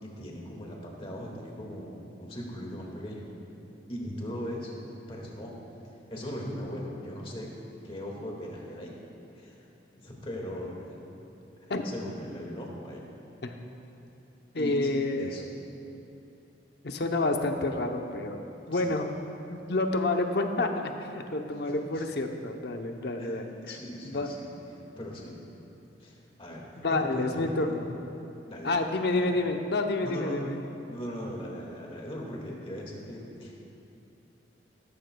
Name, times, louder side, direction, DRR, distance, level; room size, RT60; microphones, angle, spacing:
voice 1, 0.0-3.3 3.9-4.7 5.1-5.6 6.1-7.5 7.8-8.9 9.4-9.6 9.9-11.0 11.6-13.0 14.5-15.4 18.7-19.0 21.7-22.1 23.2-25.3 26.0-27.7 28.4-29.3 30.0-30.5 30.9-33.5, equal, 30° left, -2 dB, 1.9 m, -39 dB
voice 2, 14.5-15.5 16.8-19.1 19.5-23.8 24.0-24.3 26.8-27.8 28.6-30.6, left 2 dB, 60° left, 4 dB, 0.8 m, -29 dB
16.0 x 14.0 x 2.3 m, 2.8 s
head